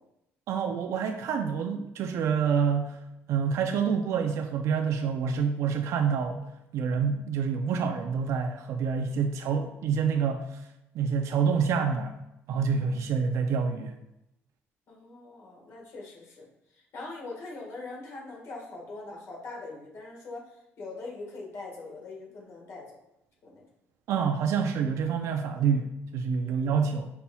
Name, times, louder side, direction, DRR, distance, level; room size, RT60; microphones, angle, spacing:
voice 1, 0.5-3.0 3.3-6.5 6.7-10.6 10.9-12.1 12.5-13.9 24.1-27.1, right 6 dB, 70° right, 5 dB, 0.4 m, -27 dB
voice 2, 14.9-16.4 16.9-20.5 20.8-22.9 23.4-23.6 26.5-26.7, left 3 dB, 60° left, -2 dB, 1.5 m, -42 dB
5.6 x 4.1 x 2.3 m, 0.86 s
cardioid pair, 110°, 5 cm